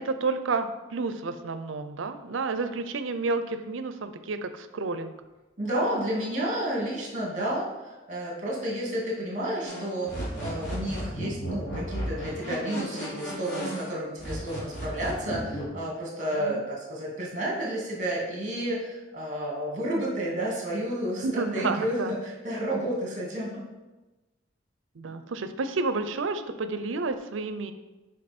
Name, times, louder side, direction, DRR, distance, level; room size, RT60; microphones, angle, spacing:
voice 1, 0.0-5.1 16.3-16.6 21.2-22.1 25.0-27.7, right 3 dB, 85° right, 10 dB, 0.6 m, -30 dB
voice 2, 5.6-23.6, right 1 dB, 40° right, -3 dB, 2.2 m, -31 dB
sound 1, 9.6-13.9 14.2-15.6, equal, 65° left, 2.6 m, -35 dB
6.4 x 5.4 x 4.4 m, 1.1 s
head